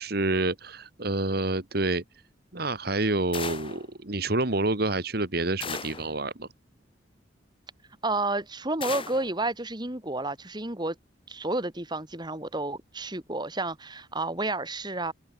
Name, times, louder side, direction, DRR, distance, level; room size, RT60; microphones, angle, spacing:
voice 1, 0.0-2.0 2.5-6.5, right 2 dB, 55° right, 2.3 m, -28 dB
sound 1, 3.3-3.9 5.6-6.1 8.8-9.3, left 5 dB, 30° left, 1.5 m, -36 dB
voice 2, 8.0-11.0 11.3-15.1, right 2 dB, 25° right, 3.7 m, -31 dB
head